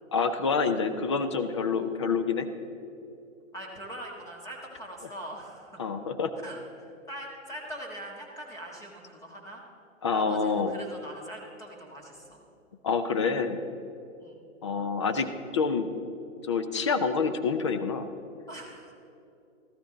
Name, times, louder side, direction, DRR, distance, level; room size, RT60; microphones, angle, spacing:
voice 1, 0.1-2.5 5.8-6.3 10.0-10.8 12.8-13.6 14.6-15.3 15.5-15.9 16.5-18.1, left 5 dB, 25° left, 9 dB, 0.4 m, -27 dB
voice 2, 3.5-5.9 6.4-9.6 10.1-12.4 14.2-14.4 18.5-18.9, right 1 dB, 10° left, -2 dB, 1.5 m, -42 dB
14.0 x 13.0 x 3.9 m, 2.8 s
hypercardioid pair, 135°, 40 cm